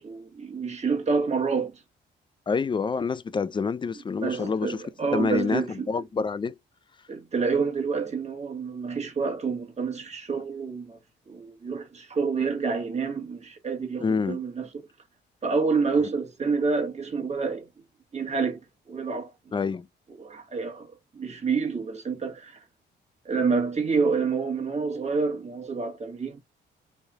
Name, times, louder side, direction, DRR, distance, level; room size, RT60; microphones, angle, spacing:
voice 1, 0.0-1.8 4.2-5.9 7.1-11.0 11.3-14.7 15.4-17.7 18.1-18.6 18.9-19.5 20.2-22.6 23.2-26.4, right 5 dB, 35° right, 1.5 m, -28 dB
voice 2, 2.5-4.8 5.1-6.5 14.0-14.4 19.5-19.9, left 5 dB, 25° left, 0.4 m, -27 dB
3.2 x 2.7 x 3.5 m
cardioid pair, 90°, 20 cm